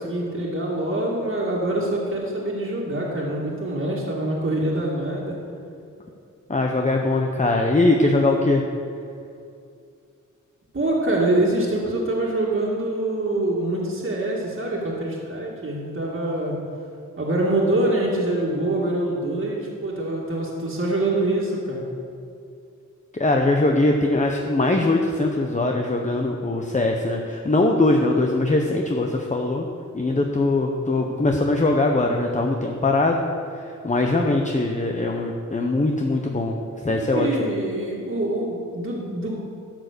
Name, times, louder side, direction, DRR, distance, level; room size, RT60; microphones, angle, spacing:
voice 1, 0.0-5.4 10.7-16.6 17.2-21.8 37.1-39.3, right 1 dB, 40° right, -5 dB, 2.0 m, -25 dB
voice 2, 6.5-8.6 23.1-29.7 29.9-33.2 33.5-36.6 36.8-37.3, left 2 dB, 25° left, 2 dB, 0.8 m, -21 dB
11.5 x 6.6 x 6.7 m, 2.5 s
wide cardioid pair, 95°, 32 cm